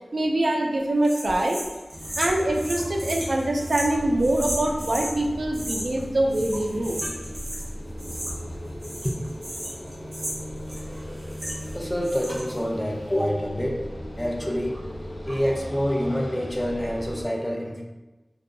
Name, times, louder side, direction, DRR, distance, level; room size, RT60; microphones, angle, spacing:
voice 1, 0.1-1.6 2.2-7.0 15.3-15.4, right 1 dB, 70° right, 0 dB, 0.3 m, -24 dB
sound 1, 1.0-5.1 5.5-6.0 6.3-7.7 8.0-8.5 8.8-11.7 12.0-12.6, right 1 dB, 85° right, 0.8 m, -35 dB
sound 2, 1.9-17.2, equal, 75° left, 0.5 m, -37 dB
voice 2, 11.7-13.9 14.2-14.8 15.2-17.8, equal, 15° left, 0 dB, 0.4 m, -27 dB
2.6 x 2.2 x 2.5 m, 1.1 s
wide cardioid pair, 70°, 0 cm